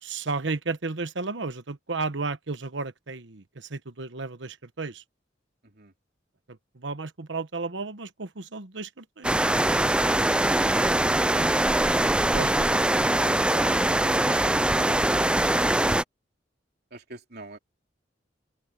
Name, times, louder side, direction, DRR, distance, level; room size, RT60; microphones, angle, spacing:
voice 1, 0.0-5.0 6.5-9.3 10.9-11.5 12.3-15.1, right 3 dB, 80° right, 1.2 m, -34 dB
sound 1, 9.2-16.0, right 1 dB, 5° right, 0.4 m, -22 dB
voice 2, 16.9-17.6, right 2 dB, 60° right, 3.4 m, -45 dB
open air
head